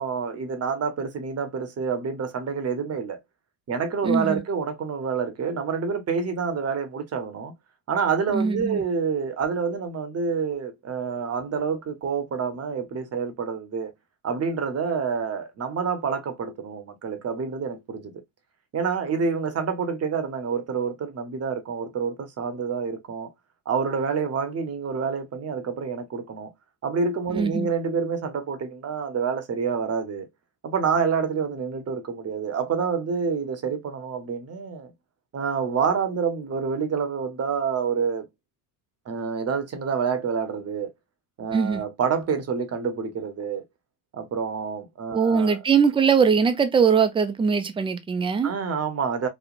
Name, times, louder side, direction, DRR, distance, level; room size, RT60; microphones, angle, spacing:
voice 1, 0.0-3.2 3.7-7.5 7.9-13.9 14.2-18.1 18.7-23.3 23.7-26.5 26.8-30.3 30.6-34.9 35.3-38.3 39.1-40.9 41.4-43.6 44.1-45.8 48.4-49.3, right 6 dB, 30° right, 0.8 m, -27 dB
voice 2, 4.0-4.4 8.3-8.8 27.3-27.7 41.5-41.8 45.1-48.5, right 6 dB, 10° right, 0.4 m, -21 dB
3.1 x 2.1 x 2.4 m
hypercardioid pair, 75°, 46 cm